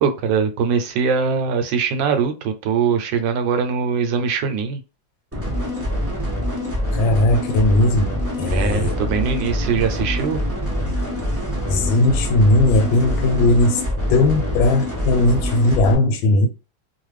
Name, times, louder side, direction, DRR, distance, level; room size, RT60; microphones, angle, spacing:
voice 1, 0.0-4.8 8.5-10.4, right 6 dB, 80° right, 1.2 m, -21 dB
sound 1, 5.3-15.9, equal, 20° right, 0.4 m, -25 dB
voice 2, 6.9-8.9 11.7-13.8 14.1-16.5, left 2 dB, 85° left, 1.4 m, -18 dB
3.1 x 2.3 x 3.2 m
omnidirectional pair, 2.1 m